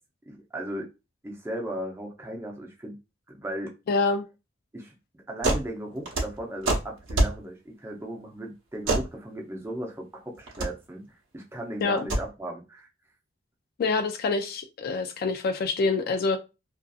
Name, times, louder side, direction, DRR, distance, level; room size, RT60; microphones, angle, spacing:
voice 1, 0.3-0.9 1.2-3.0 3.3-3.7 4.7-11.0 11.3-12.9, right 1 dB, 15° right, 0.6 m, -36 dB
voice 2, 3.9-4.2 11.8-12.1 13.8-16.4, left 3 dB, 50° left, 0.3 m, -26 dB
sound 1, 5.4-5.7 6.0-7.4 8.8-9.1 10.4-10.7 11.9-12.2, right 2 dB, 70° right, 0.9 m, -25 dB
2.5 x 2.5 x 2.3 m
head